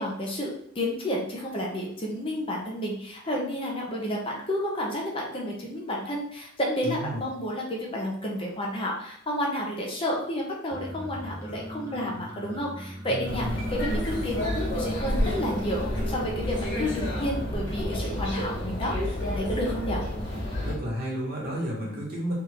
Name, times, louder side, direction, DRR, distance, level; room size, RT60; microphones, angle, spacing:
voice 1, 0.0-20.0, equal, 25° left, -2 dB, 0.8 m, -31 dB
voice 2, 6.8-7.2 13.1-13.7 20.6-22.3, equal, 50° right, -4 dB, 1.5 m, -32 dB
sound 1, 10.7-17.9, left 1 dB, 15° right, 0.9 m, -40 dB
sound 2, 13.2-20.8, equal, 60° left, 1.4 m, -30 dB
3.6 x 2.6 x 4.6 m, 0.68 s
head